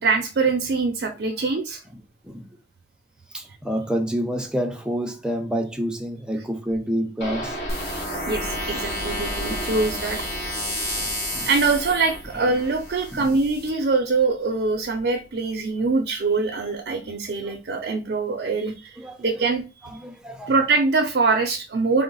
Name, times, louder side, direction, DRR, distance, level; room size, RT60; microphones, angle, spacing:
voice 1, 0.0-1.8 8.3-10.3 11.5-19.6 20.5-22.0, right 4 dB, 65° right, 0.5 m, -23 dB
voice 2, 3.3-7.6 10.7-11.5 13.1-13.3 17.0-17.1 19.0-19.3 19.8-20.5, equal, 5° right, 0.4 m, -28 dB
sound 1, 7.2-15.1 15.4-15.5 15.9-16.0, right 1 dB, 60° left, 1.2 m, -35 dB
sound 2, 7.7-13.7, left 1 dB, 15° left, 1.3 m, -32 dB
3.8 x 2.0 x 3.8 m
head